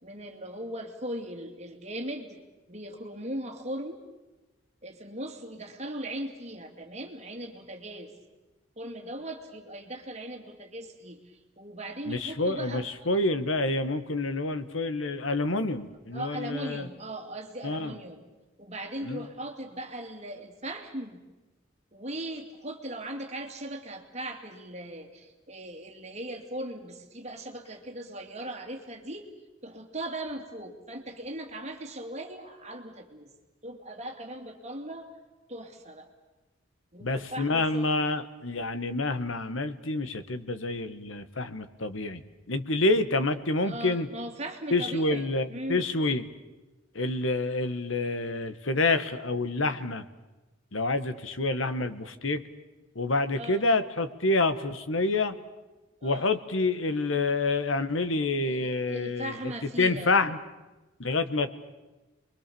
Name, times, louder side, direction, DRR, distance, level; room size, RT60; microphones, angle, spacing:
voice 1, 0.0-2.4 2.7-4.1 4.8-8.1 8.8-12.8 16.1-18.2 18.6-21.2 21.9-29.3 29.6-33.3 33.6-35.1 35.5-36.1 36.9-37.9 43.6-45.8 53.3-53.7 56.0-56.3 58.4-60.1, right 1 dB, 35° right, 4 dB, 2.6 m, -39 dB
voice 2, 12.1-16.9 17.6-17.9 19.0-19.2 37.0-42.2 42.5-44.1 44.7-46.2 46.9-50.0 50.7-52.4 52.9-55.3 56.0-59.3 59.8-60.4 61.0-61.5, left 2 dB, 85° left, 10 dB, 1.5 m, -28 dB
29.0 x 22.5 x 7.0 m, 1.1 s
head